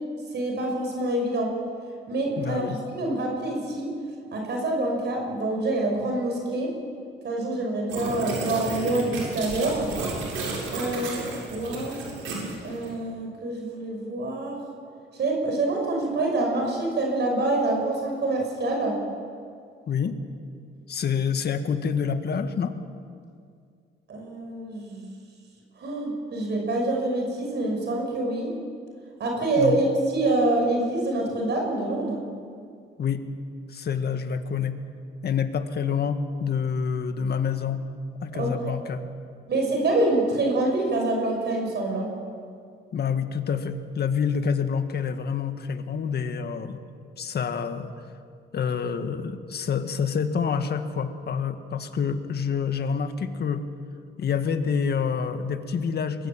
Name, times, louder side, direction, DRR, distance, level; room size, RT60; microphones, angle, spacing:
voice 1, 0.3-1.5 2.1-3.9 4.3-6.7 7.2-9.9 10.7-11.1 11.5-12.0 12.6-14.6 15.2-19.0 24.1-25.1 25.8-28.5 29.2-32.2 38.3-38.7 39.5-42.1, right 2 dB, 60° right, 1 dB, 5.9 m, -26 dB
voice 2, 2.4-2.8 19.9-20.2 20.9-22.8 29.6-29.8 33.0-33.2 33.7-34.8 35.2-37.8 38.2-39.0 42.9-46.8 47.2-47.9 48.5-53.6 54.2-56.3, left 6 dB, 55° left, 8 dB, 1.9 m, -27 dB
sound 1, 7.9-12.9, right 3 dB, 90° right, 7.3 m, -32 dB
23.0 x 20.0 x 8.7 m, 2.2 s
cardioid pair, 90°, 20 cm